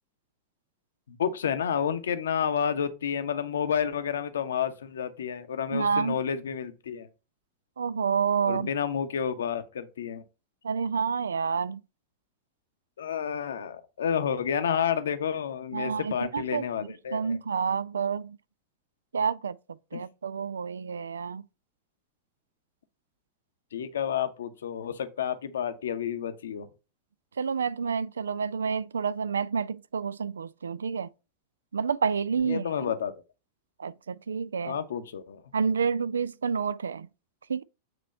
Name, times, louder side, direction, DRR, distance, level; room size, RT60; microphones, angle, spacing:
voice 1, 1.1-7.1 8.4-10.2 13.0-17.3 19.9-20.0 23.7-26.7 32.4-33.1 34.6-35.4, left 8 dB, 65° left, 0.7 m, -30 dB
voice 2, 5.7-6.2 7.8-8.7 10.6-11.8 15.7-18.4 19.1-21.5 27.4-31.1 31.7-32.7 33.8-34.8 35.5-37.1 37.5-37.6, right 6 dB, 70° right, 0.3 m, -29 dB
7.7 x 3.0 x 5.3 m
figure-of-eight pair, 90°, 0 cm